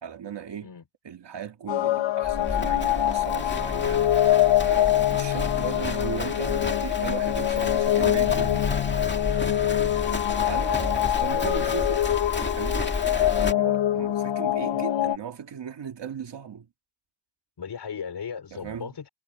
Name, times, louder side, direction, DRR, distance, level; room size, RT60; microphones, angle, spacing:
voice 1, 0.0-0.7 1.0-4.0 4.6-8.7 10.5-12.0 12.3-13.0 13.4-16.7 18.5-18.9, right 8 dB, 75° right, 2.2 m, -37 dB
sound 1, 1.7-15.2, left 13 dB, 90° left, 0.8 m, -24 dB
Livestock farm animals working animals, 2.2-13.5, left 3 dB, 25° left, 2.1 m, -31 dB
voice 2, 9.8-10.1 17.6-19.1, left 6 dB, 65° left, 4.1 m, -37 dB
wide cardioid pair, 175°, 43 cm